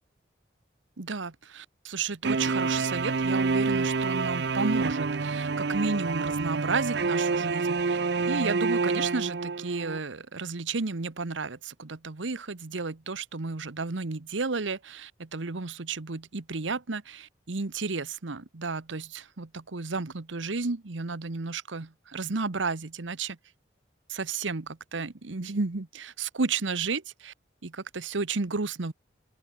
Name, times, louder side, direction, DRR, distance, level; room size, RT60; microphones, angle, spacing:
voice 1, 1.0-8.0 8.3-23.4 24.1-27.3 27.6-28.9, right 4 dB, 85° right, 1.1 m, -32 dB
sound 1, 2.2-10.0, right 4 dB, 60° right, 0.6 m, -27 dB
open air
head